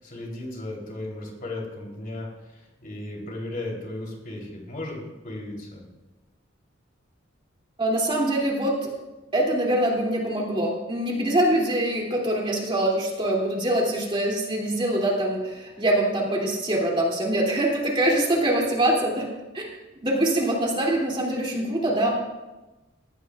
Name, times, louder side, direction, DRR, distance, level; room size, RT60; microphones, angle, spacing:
voice 1, 0.0-5.8, left 1 dB, 45° left, -1 dB, 3.3 m, -35 dB
voice 2, 7.8-8.9 9.3-19.3 19.5-19.7 20.0-22.1, right 1 dB, 25° right, -2 dB, 2.6 m, -24 dB
19.0 x 15.0 x 2.4 m, 1.1 s
head